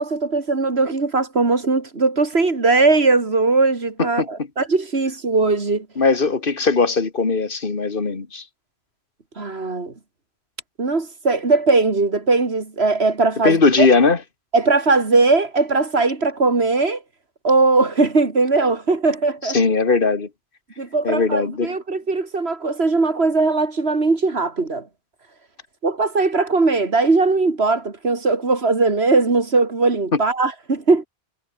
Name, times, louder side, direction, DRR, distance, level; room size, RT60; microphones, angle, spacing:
voice 1, 0.0-5.9 9.4-9.9 10.8-13.9 14.5-17.0 17.4-19.6 20.8-24.9 25.8-31.1, right 3 dB, 85° right, 2.9 m, -19 dB
voice 2, 6.0-8.4 13.4-14.2 19.4-20.3 21.0-21.7 30.1-30.2, left 4 dB, 60° left, 2.1 m, -19 dB
omnidirectional pair, 1.0 m